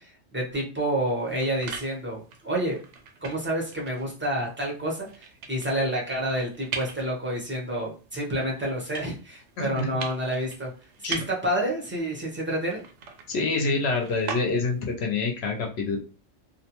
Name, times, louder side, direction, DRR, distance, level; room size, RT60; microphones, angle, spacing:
voice 1, 0.0-2.8 3.2-10.7 11.1-12.8, right 1 dB, 15° right, -2 dB, 0.5 m, -29 dB
sound 1, 1.0-14.9, right 5 dB, 70° right, 0.8 m, -42 dB
voice 2, 13.3-16.0, left 3 dB, 65° left, 2 dB, 0.7 m, -26 dB
2.6 x 2.1 x 2.8 m, 0.34 s
omnidirectional pair, 1.3 m